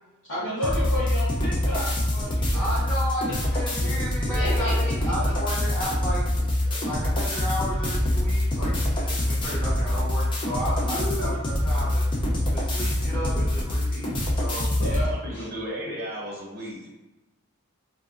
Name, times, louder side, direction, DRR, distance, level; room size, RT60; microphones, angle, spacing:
voice 1, 0.3-2.7 3.2-3.9 4.3-5.1 14.7-15.5, equal, 55° left, -11 dB, 0.8 m, -33 dB
sound 1, 0.6-15.1, left 1 dB, 20° left, 0.3 m, -25 dB
voice 2, 2.5-6.3 6.6-12.0 12.5-14.1 14.4-14.7, equal, 5° left, -10 dB, 0.9 m, -33 dB
voice 3, 10.8-11.3 14.7-16.9, equal, 45° right, -4 dB, 0.7 m, -34 dB
2.5 x 2.1 x 2.4 m, 1.1 s
head